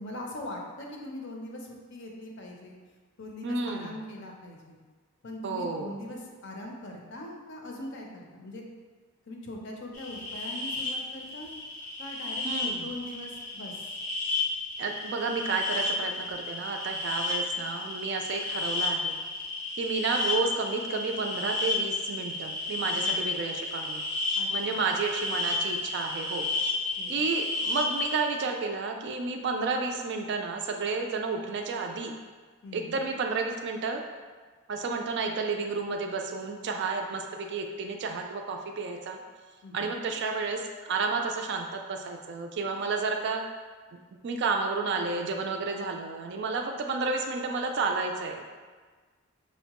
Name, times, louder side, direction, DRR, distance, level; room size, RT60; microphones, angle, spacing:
voice 1, 0.0-2.8 3.2-4.8 5.2-8.6 9.3-11.5 12.0-12.5 12.8-13.8 23.0-23.4 24.4-24.8 27.0-27.2 32.6-33.0 39.6-40.0, left 1 dB, 55° left, 0 dB, 0.5 m, -41 dB
voice 2, 3.4-4.0 5.4-5.9 12.4-12.9 14.8-19.2 19.8-24.0 24.5-26.5 27.1-32.1 32.7-34.0 34.7-39.2 39.7-40.6 40.9-43.4 43.9-44.0 44.2-48.4, right 4 dB, 50° right, 3 dB, 0.3 m, -31 dB
sound 1, 9.9-28.2, left 3 dB, 80° left, 0.8 m, -32 dB
5.4 x 2.1 x 2.9 m, 1.4 s
head